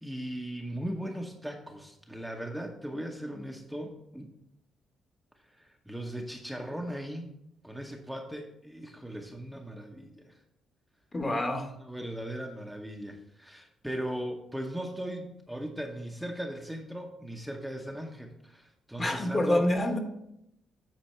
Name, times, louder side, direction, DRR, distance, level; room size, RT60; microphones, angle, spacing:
voice 1, 0.0-4.3 5.4-7.4 7.6-10.4 11.8-19.7, equal, ahead, 1 dB, 0.8 m, -38 dB
voice 2, 11.1-11.7 19.0-20.0, left 1 dB, 25° left, 6 dB, 1.1 m, -27 dB
8.5 x 4.3 x 4.3 m, 0.79 s
cardioid pair, 90°, 0 cm